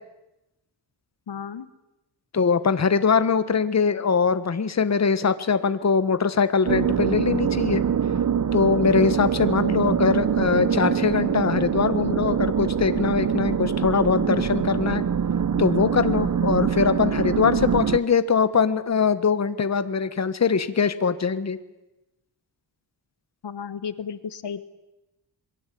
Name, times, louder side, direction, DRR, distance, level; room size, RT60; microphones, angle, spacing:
voice 1, 1.3-1.7 23.4-24.6, left 7 dB, 75° left, 14 dB, 1.4 m, -33 dB
voice 2, 2.3-7.8 8.5-15.0 15.6-21.6, left 5 dB, 40° left, 12 dB, 1.4 m, -22 dB
sound 1, 6.7-18.0, right 7 dB, 45° right, 1.0 m, -24 dB
27.5 x 22.5 x 8.5 m, 0.97 s
wide cardioid pair, 120°, 42 cm